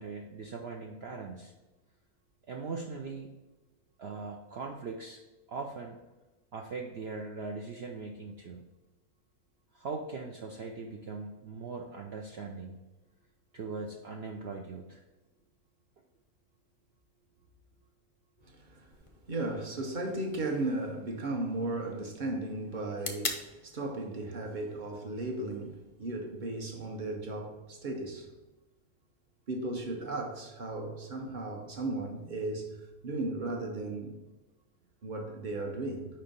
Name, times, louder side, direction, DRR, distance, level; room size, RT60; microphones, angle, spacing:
voice 1, 0.0-1.5 2.5-3.3 4.0-5.2 5.5-6.0 6.5-8.6 9.7-12.8 13.5-15.0, right 4 dB, 60° right, 0.6 m, -40 dB
voice 2, 18.4-18.9 19.3-28.3 29.5-32.8 33.0-34.2 35.0-36.1, right 2 dB, 40° right, 0.9 m, -35 dB
sound 1, 18.9-26.9, left 3 dB, 55° left, 0.3 m, -45 dB
5.1 x 4.4 x 5.3 m
omnidirectional pair, 1.6 m